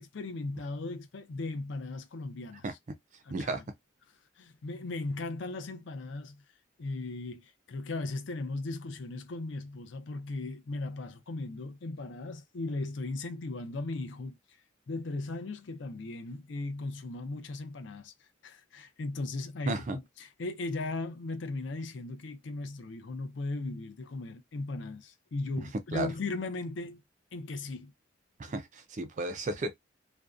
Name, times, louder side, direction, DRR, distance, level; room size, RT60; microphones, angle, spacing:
voice 1, 0.0-2.6 3.2-3.6 4.4-6.4 6.8-14.4 14.9-18.1 18.4-27.0 27.3-27.9, left 2 dB, 65° left, 0.5 m, -37 dB
voice 2, 19.7-20.0 25.6-26.1 28.4-29.7, right 3 dB, 40° right, 0.3 m, -34 dB
2.6 x 2.1 x 2.3 m
head